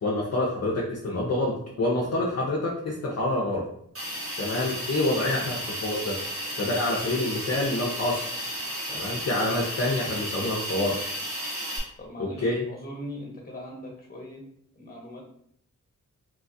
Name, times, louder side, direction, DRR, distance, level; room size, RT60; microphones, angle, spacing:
voice 1, 0.0-3.7 4.4-6.2 6.6-8.5 8.9-11.0 12.2-12.6, left 2 dB, 50° left, -3 dB, 0.6 m, -27 dB
Hiss, 4.0-11.8, equal, 40° right, 1.1 m, -33 dB
voice 2, 12.0-14.4 14.7-15.2, equal, 25° left, -1 dB, 1.0 m, -40 dB
3.0 x 2.3 x 2.6 m, 0.68 s
wide cardioid pair, 80°, 33 cm